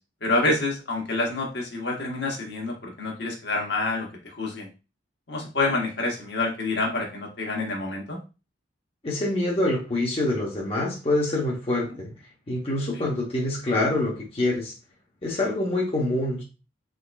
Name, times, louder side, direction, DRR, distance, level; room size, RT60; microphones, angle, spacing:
voice 1, 0.2-4.1 4.4-4.7 5.3-8.2 12.9-13.1, left 2 dB, 60° left, 0 dB, 1.1 m, -27 dB
voice 2, 9.0-12.1 12.5-14.7 15.2-16.4, left 2 dB, 30° left, -4 dB, 0.8 m, -25 dB
3.7 x 3.6 x 2.2 m, 0.31 s
head